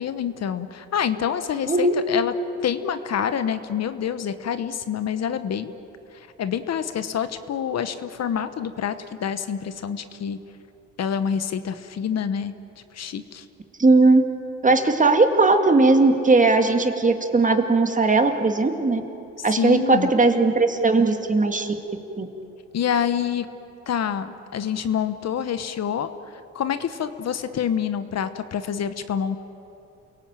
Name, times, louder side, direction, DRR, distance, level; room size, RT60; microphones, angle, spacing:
voice 1, 0.0-2.3 2.6-5.7 6.1-10.4 11.0-12.5 12.9-13.5 19.4-20.1 22.7-23.5 23.9-29.4, left 8 dB, 60° left, 11 dB, 1.2 m, -27 dB
voice 2, 13.8-14.2 14.6-19.0 19.4-21.7 22.2-22.3, right 3 dB, 25° right, 6 dB, 2.1 m, -18 dB
29.0 x 17.5 x 8.9 m, 2.9 s
cardioid pair, 90°, 30 cm